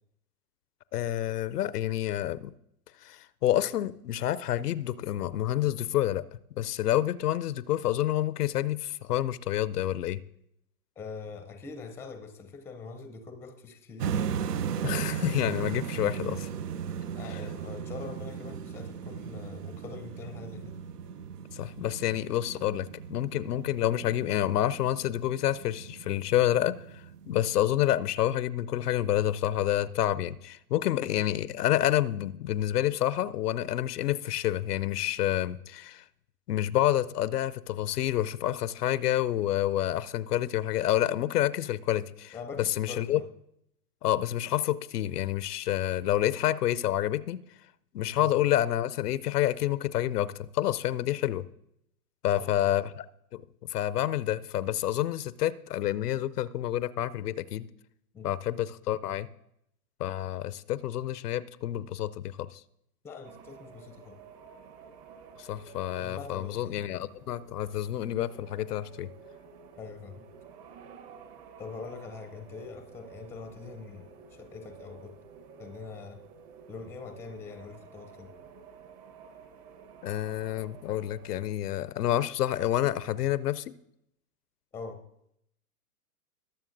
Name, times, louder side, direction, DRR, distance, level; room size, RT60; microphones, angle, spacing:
voice 1, 0.9-2.5 3.0-6.2 6.6-10.2 14.8-16.5 17.3-17.4 21.5-36.0 36.5-43.2 44.0-47.4 47.9-51.5 52.2-53.1 53.3-57.7 58.2-59.3 60.0-62.6 65.4-69.1 80.0-83.7, left 12 dB, 80° left, 0.6 m, -28 dB
voice 2, 11.0-14.4 17.1-20.8 42.3-43.3 48.1-48.3 52.3-52.8 58.1-58.4 63.0-64.2 66.0-66.8 69.8-70.3 71.6-75.1 75.6-76.2 76.7-78.3 84.7-85.0, left 5 dB, 5° left, 0.5 m, -43 dB
sound 1, 14.0-28.0, right 8 dB, 80° right, 0.7 m, -37 dB
sound 2, 63.2-81.5, right 6 dB, 40° right, 1.1 m, -51 dB
20.5 x 7.0 x 2.6 m
hypercardioid pair, 115°, 46 cm